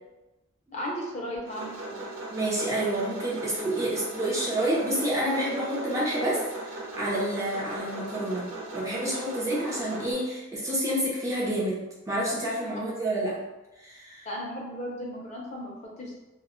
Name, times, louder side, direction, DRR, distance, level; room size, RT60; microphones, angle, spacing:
voice 1, 0.7-2.1 14.2-16.1, equal, 35° left, -3 dB, 0.5 m, -35 dB
sound 1, 1.5-10.1, right 2 dB, 75° right, 0.6 m, -38 dB
voice 2, 2.3-13.4 13.8-14.3, right 1 dB, 15° right, -6 dB, 0.5 m, -29 dB
2.1 x 2.0 x 3.5 m, 1.0 s
head